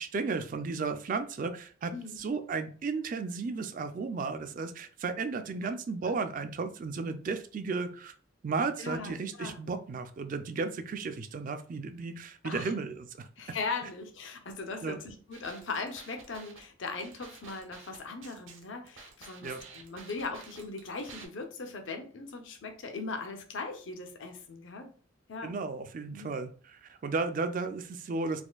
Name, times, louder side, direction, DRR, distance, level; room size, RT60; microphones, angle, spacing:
voice 1, 0.0-8.1 8.4-13.3 14.8-15.0 19.4-19.6 25.4-28.4, right 4 dB, 40° right, 9 dB, 0.3 m, -34 dB
voice 2, 1.9-2.2 6.0-6.2 8.8-9.6 12.4-12.7 13.4-24.9 25.3-25.5 26.1-26.3, left 4 dB, 70° left, 5 dB, 0.6 m, -39 dB
sound 1, 15.3-21.3, right 4 dB, 80° right, 0.7 m, -51 dB
4.2 x 2.5 x 2.2 m, 0.42 s
head